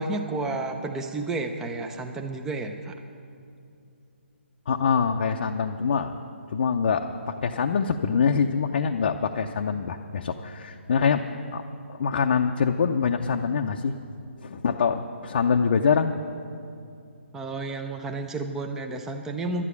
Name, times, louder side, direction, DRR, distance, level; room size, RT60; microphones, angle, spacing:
voice 1, 0.0-2.9 17.3-19.6, right 2 dB, 5° right, 4 dB, 0.6 m, -31 dB
voice 2, 4.7-6.1 6.5-11.2 11.5-11.6 11.9-13.9 14.4-16.1, left 6 dB, 50° left, 3 dB, 0.6 m, -24 dB
11.5 x 9.9 x 8.3 m, 2.5 s
figure-of-eight pair, 145°, 7 cm